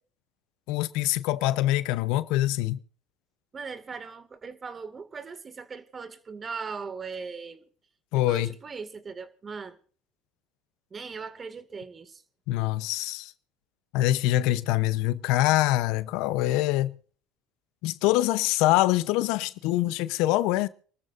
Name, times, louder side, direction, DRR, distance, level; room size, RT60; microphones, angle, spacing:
voice 1, 0.7-2.8 8.1-8.5 12.5-13.3 13.9-16.9 17.8-20.7, left 15 dB, 70° left, 0.8 m, -24 dB
voice 2, 3.5-7.6 8.1-9.8 10.9-12.2, right 5 dB, 30° right, 2.1 m, -39 dB
27.5 x 13.5 x 2.6 m
hypercardioid pair, 80°, 0 cm